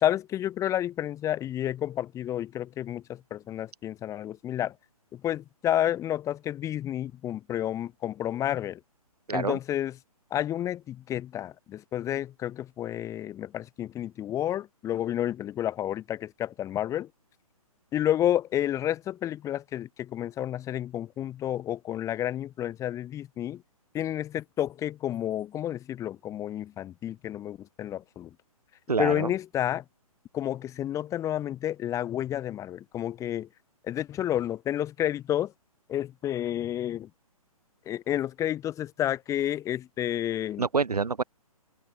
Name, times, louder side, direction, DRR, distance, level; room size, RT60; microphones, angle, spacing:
voice 1, 0.0-4.7 5.1-8.8 9.3-9.9 10.3-17.1 17.9-23.6 23.9-28.3 29.0-29.8 30.3-33.5 33.8-35.5 35.9-37.1 37.9-40.6, left 11 dB, 15° left, 1.9 m, -30 dB
voice 2, 9.3-9.6 28.9-29.3 40.6-41.2, right 4 dB, 85° right, 1.0 m, -26 dB
figure-of-eight pair, 135°, 19 cm